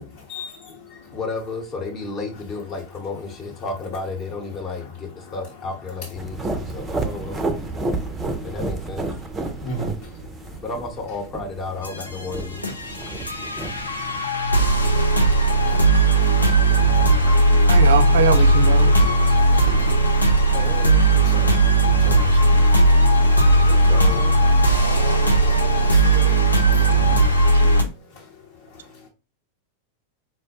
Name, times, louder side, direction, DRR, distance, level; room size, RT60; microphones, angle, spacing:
voice 1, 0.0-1.2 4.7-5.4 6.0-8.6 9.4-10.6 13.1-13.8 14.1-14.3 14.6-14.8 15.1-15.3 15.6-15.8 16.9-17.4 18.9-19.1 19.7-20.0 21.1-21.5 22.0-22.7 23.4-23.5 25.9-26.3 26.7-26.9 27.2-29.1, left 1 dB, 55° left, 0.9 m, -39 dB
voice 2, 1.1-7.5 8.4-9.1 10.6-12.7 20.5-21.1 23.6-24.4, left 3 dB, 25° left, 0.9 m, -32 dB
sound 1, 6.1-14.2, right 2 dB, 15° right, 0.6 m, -31 dB
sound 2, 11.8-27.8, right 2 dB, 80° left, 0.6 m, -17 dB
voice 3, 17.6-18.9 23.4-23.5 26.7-26.9 27.5-27.9, right 6 dB, 60° right, 0.4 m, -24 dB
4.4 x 2.1 x 2.8 m
figure-of-eight pair, 90°, 0 cm